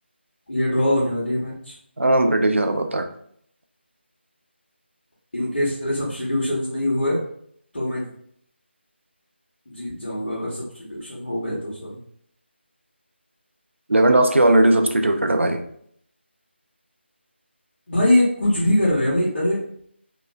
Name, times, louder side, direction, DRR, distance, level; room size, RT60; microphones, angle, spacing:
voice 1, 0.5-1.7 5.3-7.2 7.7-8.1 9.7-12.0 17.9-19.6, left 1 dB, 70° left, -10 dB, 1.2 m, -23 dB
voice 2, 2.0-3.1 13.9-15.6, right 1 dB, 80° right, 6 dB, 0.5 m, -18 dB
2.9 x 2.3 x 3.1 m, 0.66 s
figure-of-eight pair, 160°, 7 cm